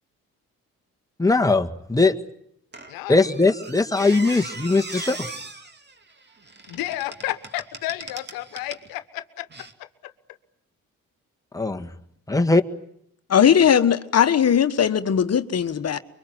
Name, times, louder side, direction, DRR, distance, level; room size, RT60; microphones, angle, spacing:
voice 1, 1.2-2.1 3.1-5.3 11.5-11.9 12.3-12.6, left 3 dB, 10° left, 1.8 m, -20 dB
Squeak, 2.7-8.9 9.5-9.7, right 3 dB, 30° right, 2.6 m, -39 dB
voice 2, 2.9-3.2 3.7-4.3 6.7-10.1 13.4-13.5, left 16 dB, 90° left, 1.3 m, -33 dB
voice 3, 13.3-16.0, left 8 dB, 50° left, 1.4 m, -18 dB
24.5 x 23.0 x 9.3 m
supercardioid pair, 65°, 33 cm